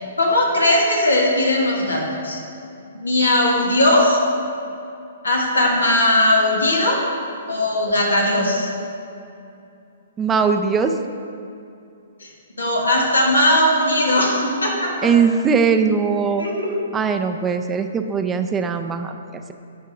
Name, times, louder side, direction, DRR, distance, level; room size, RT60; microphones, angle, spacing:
voice 1, 0.2-2.4 3.0-4.2 5.2-7.0 7.5-8.7 12.2-12.3 12.6-15.0 16.4-16.7, left 1 dB, 90° left, -1 dB, 1.7 m, -18 dB
voice 2, 10.2-10.9 15.0-16.5 16.9-19.5, right 6 dB, 15° right, 7 dB, 0.4 m, -20 dB
10.0 x 3.7 x 6.0 m, 2.6 s
hypercardioid pair, 130°, 0 cm